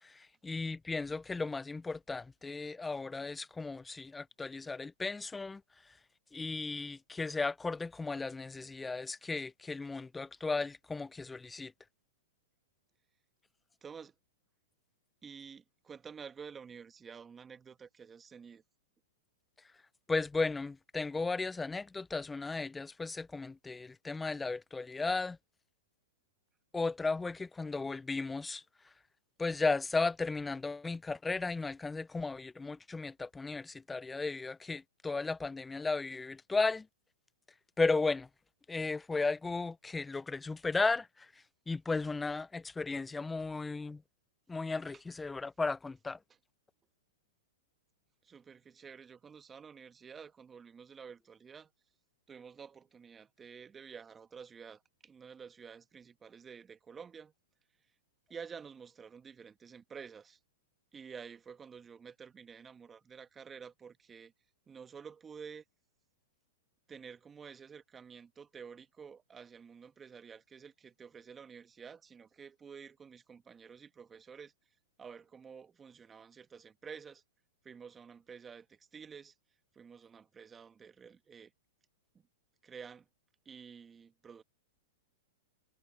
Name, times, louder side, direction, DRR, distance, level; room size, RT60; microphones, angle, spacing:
voice 1, 0.0-5.9 6.3-11.7 20.1-25.4 26.7-28.9 29.4-36.9 37.8-38.3 38.7-44.0 44.5-46.2, left 3 dB, 10° left, 0.4 m, -35 dB
voice 2, 13.8-14.1 15.2-18.6 48.2-51.7 52.3-57.3 58.3-60.4 60.9-64.3 64.7-65.6 66.9-74.5 75.0-77.2 77.6-79.3 79.7-81.5 82.6-83.0 83.4-84.4, right 6 dB, 20° right, 1.4 m, -50 dB
hypercardioid pair, 120°, 0 cm